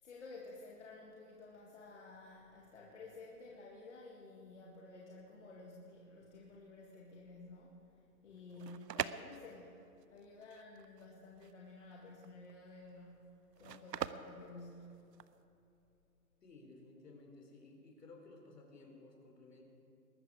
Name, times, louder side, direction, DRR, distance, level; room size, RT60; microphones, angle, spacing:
voice 1, 0.0-7.9 8.2-9.8 10.1-15.2, left 2 dB, 45° left, -2 dB, 2.0 m, -53 dB
sound 1, 8.3-15.4, right 8 dB, 85° right, 0.8 m, -44 dB
voice 2, 16.4-19.6, left 3 dB, 75° left, 1 dB, 3.7 m, -56 dB
21.0 x 13.5 x 4.9 m, 2.8 s
hypercardioid pair, 165°, 48 cm